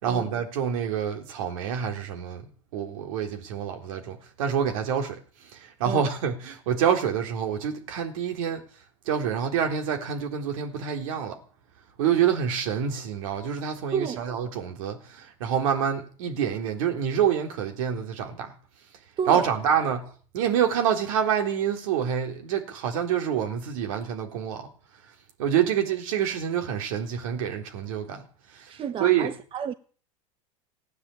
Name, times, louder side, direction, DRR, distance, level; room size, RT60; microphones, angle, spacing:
voice 1, 0.0-8.6 9.1-11.4 12.0-18.5 19.3-24.7 25.4-29.4, right 8 dB, 75° right, 3.9 m, -27 dB
voice 2, 13.9-14.2 19.2-19.5 19.8-19.9 28.7-29.7, right 7 dB, 30° right, 1.0 m, -31 dB
16.5 x 9.5 x 8.5 m
hypercardioid pair, 100°, 17 cm